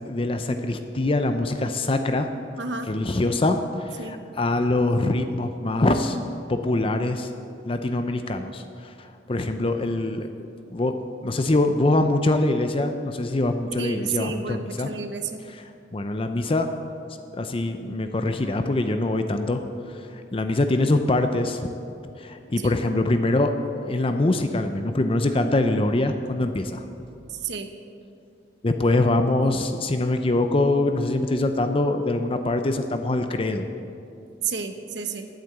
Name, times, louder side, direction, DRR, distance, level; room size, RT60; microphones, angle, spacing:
voice 1, 0.1-2.3 2.9-6.2 6.5-10.3 10.7-11.0 11.2-14.9 15.5-16.7 17.3-21.7 22.2-23.5 23.8-26.8 28.6-33.7, left 2 dB, 30° left, 7 dB, 0.5 m, -24 dB
voice 2, 2.6-2.9 4.0-4.2 13.8-15.4 22.6-22.8 27.3-27.7 34.4-35.3, right 5 dB, 65° right, 7 dB, 1.0 m, -31 dB
10.5 x 9.0 x 7.9 m, 2.6 s
head